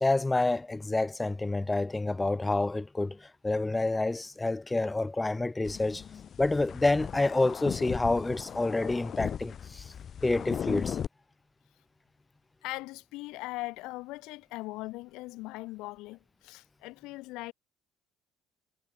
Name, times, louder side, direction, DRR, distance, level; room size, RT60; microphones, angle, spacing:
voice 1, 0.0-6.0 6.4-9.9 10.2-11.0, left 2 dB, 15° left, 0.4 m, -28 dB
sound 1, 5.6-11.1, left 8 dB, 45° left, 0.9 m, -37 dB
voice 2, 12.6-17.5, left 21 dB, 75° left, 1.6 m, -40 dB
supercardioid pair, 100°, 0 cm